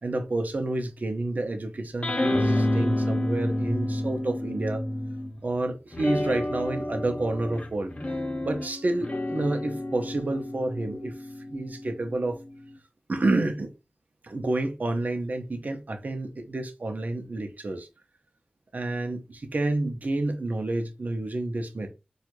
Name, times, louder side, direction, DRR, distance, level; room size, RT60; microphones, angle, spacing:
voice 1, 0.0-4.8 5.4-7.9 8.4-11.1 11.5-12.4 13.1-13.7 14.2-17.9 18.7-21.9, right 2 dB, 65° right, 0.6 m, -29 dB
sound 1, 2.0-5.4 5.9-12.7, left 1 dB, 45° left, 0.8 m, -30 dB
4.4 x 2.3 x 2.5 m
wide cardioid pair, 60°, 3 cm